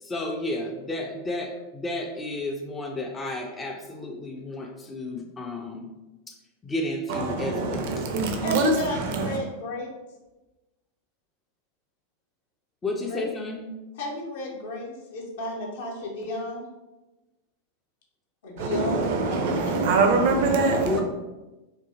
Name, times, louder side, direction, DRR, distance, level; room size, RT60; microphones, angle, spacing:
voice 1, 0.0-5.9 6.3-6.4 6.6-8.1 12.8-13.7 20.8-21.0, left 2 dB, 15° left, 2 dB, 0.3 m, -32 dB
voice 2, 7.1-9.4 18.6-21.0, right 3 dB, 50° right, 4 dB, 0.4 m, -24 dB
voice 3, 8.4-9.9 13.1-13.3 14.0-16.6 18.4-19.7, left 1 dB, 55° left, -1 dB, 0.6 m, -32 dB
2.6 x 2.6 x 2.4 m, 1.1 s
figure-of-eight pair, 90°, 0 cm